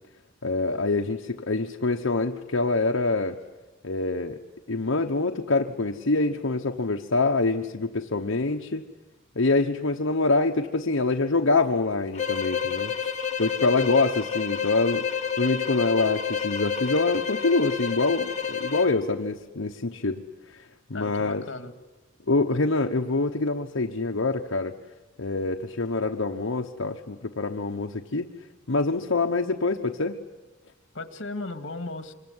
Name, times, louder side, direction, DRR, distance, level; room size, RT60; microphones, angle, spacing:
voice 1, 0.4-3.4 3.8-4.4 4.7-8.8 9.3-13.1 13.4-20.2 20.5-21.4 22.3-24.7 25.2-28.3 28.7-30.2, left 3 dB, 80° left, 2 dB, 1.1 m, -25 dB
sound 1, 12.1-19.0, left 7 dB, 35° left, 2.0 m, -29 dB
voice 2, 20.9-21.7 30.9-32.1, left 2 dB, 65° left, 8 dB, 2.2 m, -36 dB
26.0 x 23.5 x 9.7 m, 1.1 s
head